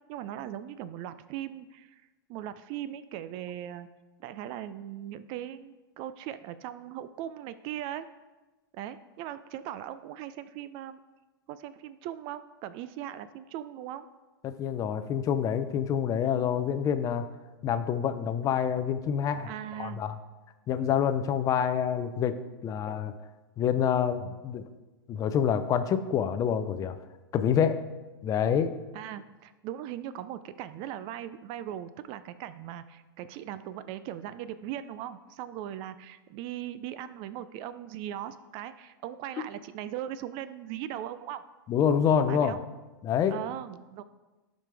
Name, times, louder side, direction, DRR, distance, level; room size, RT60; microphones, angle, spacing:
voice 1, 0.1-2.0 2.3-3.9 4.2-8.1 8.7-11.0 11.5-14.1 19.5-20.0 28.9-41.4 42.3-42.6 43.3-44.0, right 11 dB, 40° right, 13 dB, 0.4 m, -39 dB
voice 2, 14.4-17.3 17.6-19.5 19.8-20.2 20.7-23.1 23.6-24.6 25.1-27.0 27.3-27.8 28.2-28.8 41.7-42.6 43.0-43.4, left 8 dB, 30° left, 11 dB, 0.5 m, -27 dB
12.0 x 5.1 x 3.3 m, 1.2 s
hypercardioid pair, 115°, 13 cm